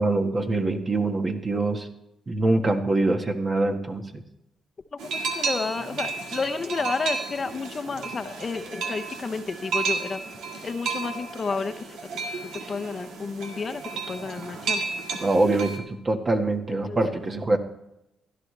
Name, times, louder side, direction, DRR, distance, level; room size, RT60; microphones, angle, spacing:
voice 1, 0.0-1.9 2.3-4.2 15.2-17.6, right 2 dB, 35° right, 5 dB, 1.6 m, -24 dB
sound 1, 5.0-15.8, right 4 dB, 90° right, 1.7 m, -32 dB
voice 2, 5.1-10.2 10.6-12.0 12.7-13.8 14.1-14.8 16.7-17.0, left 4 dB, 40° left, 9 dB, 0.8 m, -31 dB
16.5 x 12.0 x 3.3 m, 0.85 s
cardioid pair, 85°, 0 cm